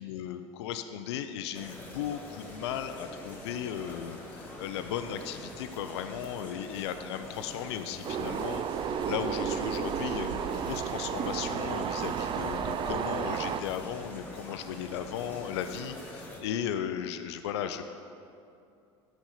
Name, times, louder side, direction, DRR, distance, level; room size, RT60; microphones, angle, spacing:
voice 1, 0.0-17.8, left 9 dB, 80° left, 9 dB, 0.4 m, -36 dB
sound 1, 1.5-16.4, left 1 dB, 10° left, 1.7 m, -45 dB
sound 2, 8.0-13.6, right 8 dB, 35° right, 0.4 m, -32 dB
6.1 x 5.3 x 5.7 m, 2.5 s
hypercardioid pair, 80°, 14 cm